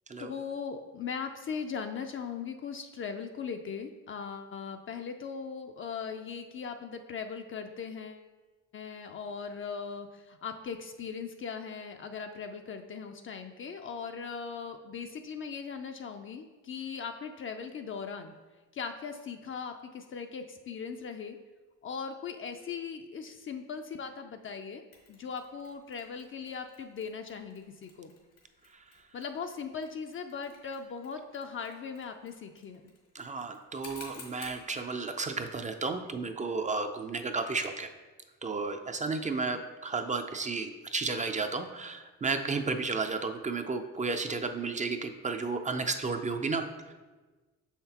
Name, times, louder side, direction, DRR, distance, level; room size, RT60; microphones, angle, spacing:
voice 1, 0.2-8.2 8.7-18.3 18.7-21.4 21.8-24.8 25.1-28.1 29.1-32.9, left 6 dB, 45° left, 5 dB, 0.4 m, -39 dB
Mechanisms, 24.9-34.7, left 4 dB, 80° left, 1.6 m, -55 dB
voice 2, 33.1-37.9 38.4-46.9, right 4 dB, 25° right, 7 dB, 0.4 m, -33 dB
6.2 x 5.8 x 2.9 m, 1.3 s
cardioid pair, 90°, 30 cm